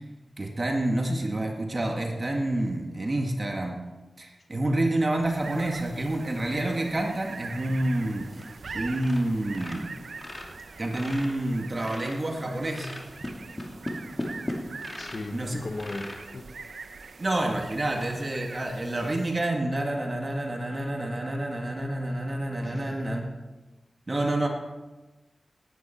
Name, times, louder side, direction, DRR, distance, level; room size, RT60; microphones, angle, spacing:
voice 1, 0.4-3.8 4.2-8.5 8.7-9.9 10.8-12.9 15.3-15.7 17.2-23.3 24.1-24.5, right 1 dB, 40° right, 1 dB, 1.9 m, -28 dB
sound 1, 5.2-19.5, right 4 dB, 80° right, 0.8 m, -44 dB
sound 2, 8.4-8.7 8.9-9.2 9.5-12.3 12.7-15.4 15.7-16.2 16.8-16.9 17.3-17.4 17.9-18.1, left 1 dB, 30° left, 2.6 m, -37 dB
voice 2, 15.0-16.5 22.6-23.1, left 2 dB, 60° left, 6 dB, 1.4 m, -37 dB
18.5 x 9.7 x 4.5 m, 1.2 s
cardioid pair, 55°, 0 cm